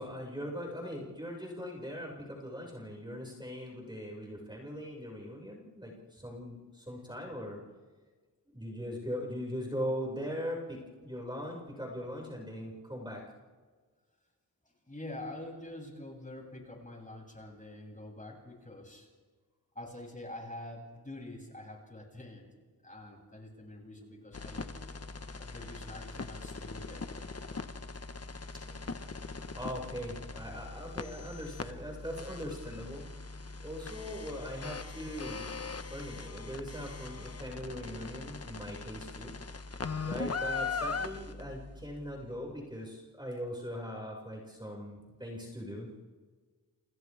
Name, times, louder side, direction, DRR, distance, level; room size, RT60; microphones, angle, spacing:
voice 1, 0.0-7.6 8.5-13.2 28.6-28.8 29.5-33.0 33.6-35.5 35.9-39.3 40.0-46.0, equal, 10° right, -2 dB, 6.2 m, -40 dB
voice 2, 14.8-19.1 19.7-22.4 22.8-24.7 25.3-27.1, left 1 dB, 20° left, -1 dB, 7.9 m, -46 dB
sound 1, 24.3-42.2, left 4 dB, 35° left, 1.4 m, -40 dB
28.5 x 28.5 x 3.6 m, 1.4 s
cardioid pair, 60°, 40 cm